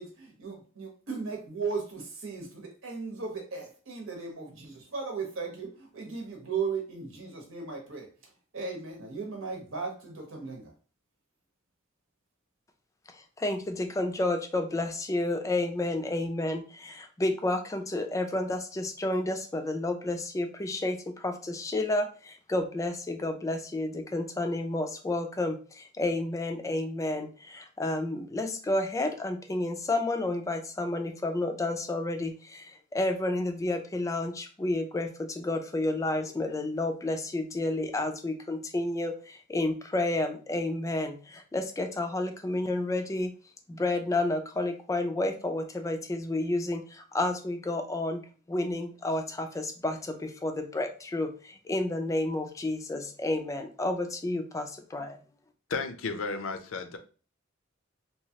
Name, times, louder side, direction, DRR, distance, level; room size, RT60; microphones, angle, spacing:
voice 1, 0.0-8.1 8.5-10.7, right 5 dB, 90° right, 0 dB, 1.0 m, -36 dB
voice 2, 13.4-43.3 43.7-55.2, left 2 dB, 15° left, 6 dB, 0.3 m, -31 dB
voice 3, 55.7-57.0, left 4 dB, 75° left, 8 dB, 0.5 m, -33 dB
3.0 x 2.3 x 2.8 m, 0.38 s
head